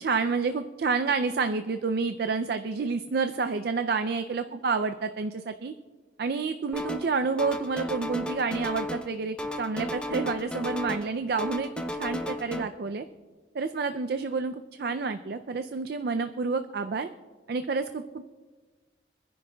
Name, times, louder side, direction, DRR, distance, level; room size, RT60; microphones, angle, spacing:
voice 1, 0.0-5.7 6.2-11.7 12.0-13.0 13.5-17.1 17.5-18.2, right 4 dB, 60° right, 8 dB, 0.4 m, -29 dB
sound 1, 6.7-7.1 7.4-9.1 9.4-11.1 11.4-12.6, left 1 dB, 5° left, 0.6 m, -34 dB
26.0 x 10.5 x 2.3 m, 1.4 s
head